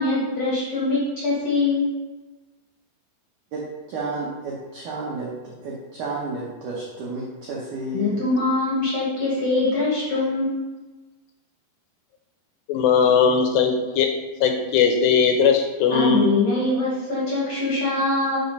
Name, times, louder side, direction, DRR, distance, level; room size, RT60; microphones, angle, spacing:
voice 1, 0.0-1.9 7.9-10.7 15.9-18.4, left 2 dB, 55° left, -7 dB, 1.8 m, -23 dB
voice 2, 3.5-8.3, right 2 dB, 80° right, -4 dB, 1.8 m, -32 dB
voice 3, 12.7-14.1 14.4-16.3, left 6 dB, 85° left, 4 dB, 2.6 m, -19 dB
5.7 x 5.7 x 5.2 m, 1.2 s
omnidirectional pair, 5.1 m